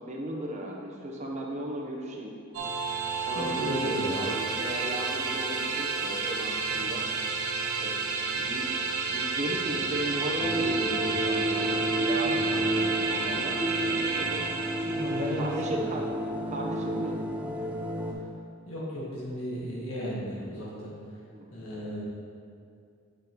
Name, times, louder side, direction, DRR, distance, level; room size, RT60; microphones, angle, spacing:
voice 1, 0.0-2.4 3.0-7.1 7.4-7.5 7.8-8.7 9.1-14.5 15.4-17.7 21.3-21.5, right 1 dB, 35° right, -1 dB, 0.8 m, -36 dB
sound 1, 2.5-15.6, right 4 dB, 85° right, 0.6 m, -31 dB
voice 2, 3.3-4.3 12.2-12.3 14.9-15.9 18.6-20.9 21.5-22.0, equal, 75° left, -6 dB, 1.4 m, -34 dB
sound 2, 10.4-18.1, right 1 dB, 5° right, 0.4 m, -31 dB
8.9 x 5.2 x 3.0 m, 2.4 s
head